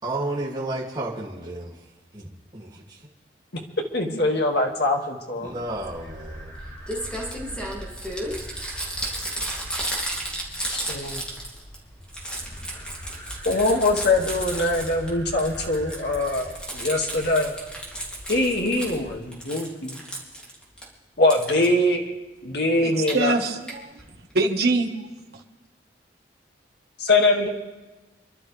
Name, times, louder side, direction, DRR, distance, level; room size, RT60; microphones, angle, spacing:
voice 1, 0.0-1.8 2.1-3.1 5.3-6.6, right 2 dB, 25° right, 2.9 m, -32 dB
voice 2, 3.9-5.5 10.7-11.2 13.4-17.5 18.3-20.0 21.2-22.1 22.4-23.3 27.0-27.5, left 2 dB, 65° left, 2.3 m, -23 dB
sound 1, 5.4-19.2, equal, 20° left, 2.8 m, -41 dB
Crumpling crinkling, 6.5-6.6 6.9-11.8 12.0-15.1 15.4-19.0 19.3-20.8 21.3-21.7 22.8-23.1 23.7-23.8 24.0-24.1 24.3-24.4, right 1 dB, 5° left, 3.0 m, -33 dB
voice 3, 22.8-24.0 24.3-24.9, right 3 dB, 60° right, 1.6 m, -24 dB
28.5 x 12.0 x 3.5 m
head